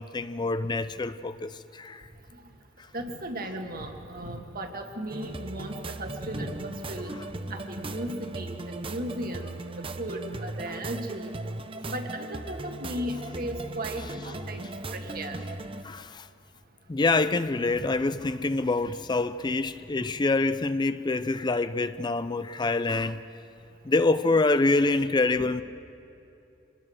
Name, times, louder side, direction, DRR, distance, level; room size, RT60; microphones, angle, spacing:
voice 1, 0.0-2.0 10.7-10.8 15.8-16.3 16.9-23.2 23.8-25.6, left 3 dB, 25° left, 0.4 m, -26 dB
voice 2, 2.9-7.1 7.5-9.5 10.0-11.3 11.9-15.4, right 1 dB, 50° right, 2.0 m, -36 dB
sound 1, 5.1-15.8, right 2 dB, 30° right, 0.8 m, -38 dB
25.5 x 20.0 x 6.4 m
head